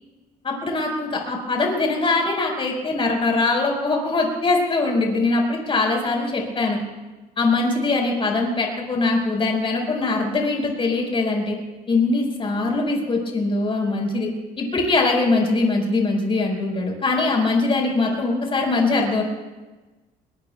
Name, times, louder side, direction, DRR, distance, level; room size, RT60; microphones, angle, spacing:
voice 1, 0.4-6.8 7.4-11.6 11.9-14.3 14.6-19.2, left 3 dB, 30° left, 0 dB, 4.8 m, -22 dB
23.5 x 21.5 x 2.3 m, 1.2 s
cardioid pair, 110°, 17 cm